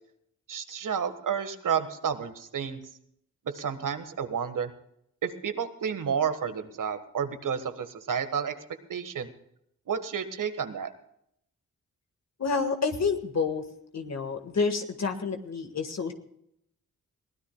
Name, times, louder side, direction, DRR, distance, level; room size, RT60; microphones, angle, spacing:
voice 1, 0.5-2.8 3.5-4.7 5.2-8.5 8.9-9.3 9.9-10.9, right 7 dB, 65° right, 9 dB, 1.5 m, -31 dB
voice 2, 12.4-13.6 13.9-16.1, left 5 dB, 50° left, 6 dB, 1.6 m, -29 dB
22.5 x 16.5 x 2.3 m, 0.73 s
cardioid pair, 60°, 34 cm